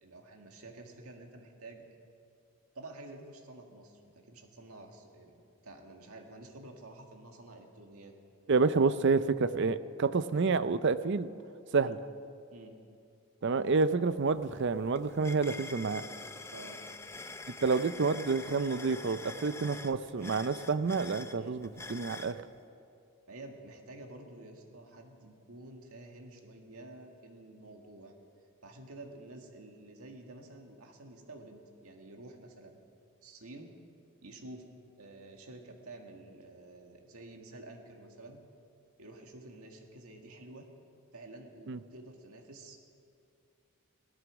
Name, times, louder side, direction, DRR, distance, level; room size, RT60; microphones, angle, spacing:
voice 1, 0.0-1.9 2.8-8.2 11.8-12.0 12.5-12.8 16.5-16.8 21.4-21.5 23.3-28.1 28.6-32.8 33.2-33.7 34.2-34.7 35.0-38.4 39.0-40.7 41.1-42.8, right 2 dB, 80° right, 3 dB, 1.9 m, -50 dB
voice 2, 8.5-11.3 11.7-12.0 13.4-16.1 17.6-22.4 41.7-41.8, right 4 dB, 55° right, 13 dB, 0.5 m, -29 dB
sound 1, 13.8-13.9 14.2-22.4, left 3 dB, 10° left, 0.4 m, -46 dB
17.5 x 12.5 x 6.2 m, 2.5 s
head